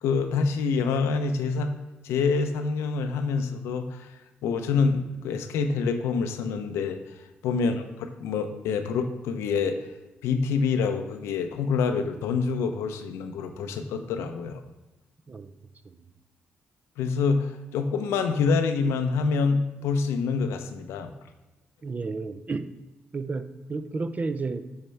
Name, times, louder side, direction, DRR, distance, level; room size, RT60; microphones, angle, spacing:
voice 1, 0.0-1.7 2.0-4.1 4.4-7.0 7.4-9.8 10.2-14.6 17.0-21.1, left 5 dB, 85° left, 7 dB, 0.6 m, -26 dB
voice 2, 21.8-22.7 23.1-24.6, right 4 dB, 35° right, 10 dB, 0.5 m, -32 dB
9.3 x 4.4 x 3.3 m, 1.0 s
supercardioid pair, 60°, 4 cm